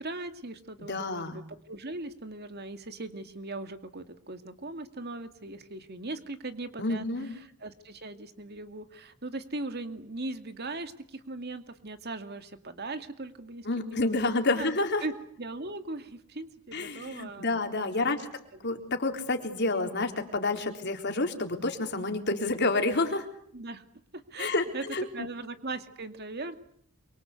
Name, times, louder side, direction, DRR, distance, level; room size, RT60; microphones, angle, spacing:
voice 1, 0.0-14.7 15.0-15.1 15.4-18.2 20.6-20.8 23.5-23.8 24.1-24.8 25.1-26.6, right 2 dB, 45° right, 9 dB, 2.3 m, -39 dB
voice 2, 0.8-1.4 6.8-7.3 13.7-15.0 16.7-18.2 18.6-23.3 24.4-25.1, left 2 dB, 50° left, 5 dB, 3.9 m, -29 dB
28.5 x 24.0 x 8.3 m, 0.66 s
head